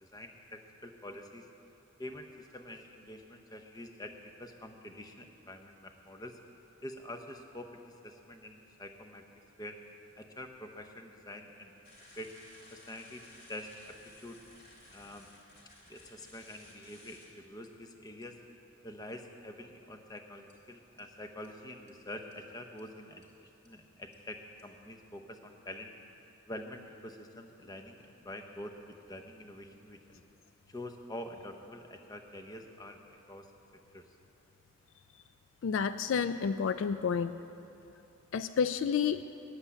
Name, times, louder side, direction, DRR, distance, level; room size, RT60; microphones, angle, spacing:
voice 1, 0.0-1.5 2.0-4.1 4.4-6.4 6.8-9.2 9.6-9.8 10.2-11.9 12.2-12.3 12.7-13.2 13.5-14.4 14.9-15.3 15.9-18.4 18.8-23.2 23.6-25.9 26.5-30.2 30.7-33.0 33.3-33.5 33.9-34.1, left 1 dB, 20° left, 5 dB, 0.7 m, -46 dB
sound 1, 11.8-17.3 17.6-17.7 18.2-18.4 20.5-20.6 21.0-21.1 21.4-21.5 21.9-22.0 22.3-22.4 22.8-22.9 23.2-23.3 23.7-23.8 24.1-24.2 24.6-24.7, left 1 dB, 50° left, 2.5 m, -57 dB
voice 2, 35.6-37.4 38.3-39.2, left 6 dB, 65° left, 11 dB, 0.3 m, -30 dB
9.8 x 8.0 x 8.1 m, 2.7 s
head